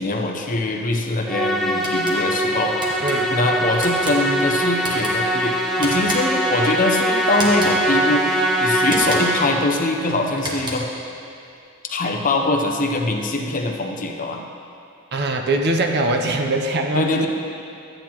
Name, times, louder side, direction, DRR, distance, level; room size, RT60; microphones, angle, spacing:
voice 1, 0.0-3.0 3.3-10.9 11.9-14.5 16.9-17.3, left 2 dB, 40° left, 2 dB, 0.7 m, -23 dB
Musical instrument, 1.3-9.8, equal, ahead, 0.5 m, -22 dB
sound 1, 1.8-2.2 2.8-3.1 3.8-4.2 4.8-5.1 5.8-6.4 7.3-7.8 8.8-9.4 10.3-11.0, equal, 20° right, 1.3 m, -31 dB
voice 2, 3.0-3.4 15.1-17.3, right 2 dB, 50° right, 3 dB, 0.6 m, -22 dB
12.5 x 8.8 x 3.0 m, 2.6 s
head